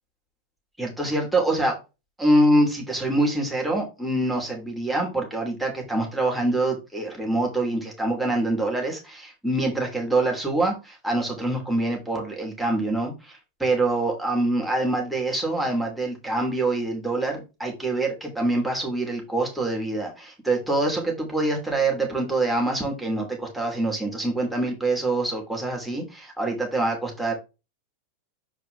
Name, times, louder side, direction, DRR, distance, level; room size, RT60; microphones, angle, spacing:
voice 1, 0.8-1.8 2.2-27.3, right 2 dB, ahead, -1 dB, 3.0 m, -25 dB
7.5 x 4.8 x 3.4 m, 0.27 s
figure-of-eight pair, 90°, 0 cm